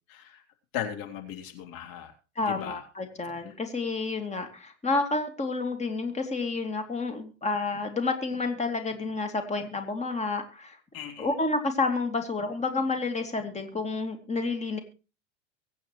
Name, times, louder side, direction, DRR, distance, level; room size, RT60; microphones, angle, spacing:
voice 1, 0.1-0.4 0.7-2.1 2.4-2.8 3.4-3.5 10.9-11.3, left 9 dB, 60° left, 5 dB, 3.4 m, -37 dB
voice 2, 2.4-10.8 11.2-14.8, left 3 dB, 15° left, 7 dB, 2.7 m, -30 dB
24.0 x 8.8 x 3.1 m, 0.33 s
hypercardioid pair, 95°, 38 cm